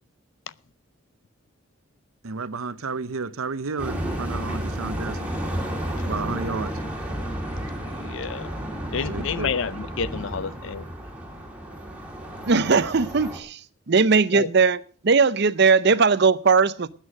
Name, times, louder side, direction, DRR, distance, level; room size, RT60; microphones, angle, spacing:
voice 1, 2.2-5.3 6.0-6.7 9.1-9.5, right 4 dB, 85° right, 0.8 m, -31 dB
sound 1, 3.8-13.4, right 1 dB, 5° right, 2.6 m, -32 dB
voice 2, 7.8-8.5 8.9-10.9 14.3-14.5, left 6 dB, 65° left, 0.5 m, -29 dB
voice 3, 12.4-13.6 13.9-16.9, right 4 dB, 55° right, 0.6 m, -19 dB
13.0 x 9.1 x 6.2 m
head